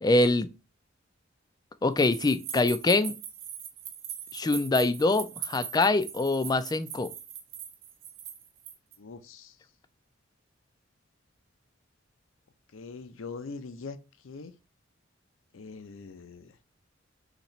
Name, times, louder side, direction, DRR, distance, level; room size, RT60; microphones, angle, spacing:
voice 1, 0.0-0.5 1.8-3.1 4.3-7.1, left 2 dB, 20° left, 0.3 m, -24 dB
sound 1, 2.0-8.9, right 9 dB, 75° right, 0.8 m, -41 dB
voice 2, 9.0-9.5 12.7-14.0 14.2-14.5 15.5-16.5, left 4 dB, 80° left, 0.6 m, -42 dB
4.1 x 2.9 x 4.2 m
head